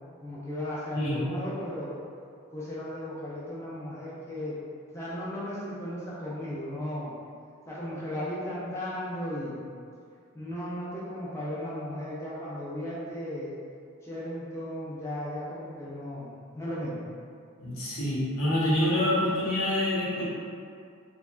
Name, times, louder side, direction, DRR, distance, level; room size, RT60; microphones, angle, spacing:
voice 1, 0.2-1.9 2.5-4.6 4.9-7.1 7.7-9.6 10.3-13.5 14.0-17.0, left 1 dB, 15° left, -8 dB, 0.4 m, -35 dB
voice 2, 17.6-20.2, left 1 dB, 85° left, -9 dB, 0.9 m, -26 dB
2.8 x 2.2 x 2.3 m, 2.3 s
head